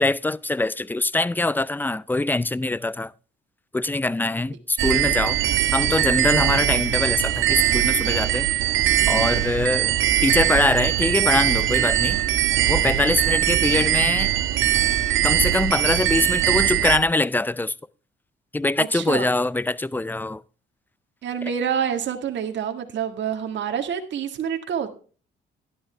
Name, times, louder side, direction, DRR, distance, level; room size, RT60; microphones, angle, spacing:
voice 1, 0.0-3.1 3.7-5.4 5.7-8.5 9.1-9.9 10.2-12.2 12.7-14.3 15.2-17.7 18.5-20.4 21.4-21.5, left 2 dB, 10° left, 0.5 m, -23 dB
sound 1, 4.8-17.0, right 12 dB, 85° right, 1.4 m, -21 dB
voice 2, 18.8-19.3 21.2-24.9, right 8 dB, 65° right, 1.8 m, -27 dB
11.5 x 11.5 x 3.3 m
cardioid pair, 90°, 20 cm